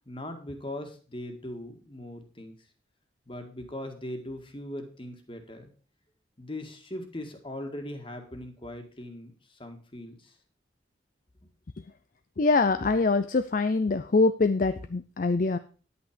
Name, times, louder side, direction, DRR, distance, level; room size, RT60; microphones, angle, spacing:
voice 1, 0.1-2.6 3.3-5.7 6.4-10.4, left 1 dB, 30° left, 5 dB, 1.9 m, -40 dB
voice 2, 12.4-15.6, left 3 dB, 45° left, 11 dB, 0.5 m, -24 dB
10.5 x 8.7 x 5.1 m, 0.39 s
head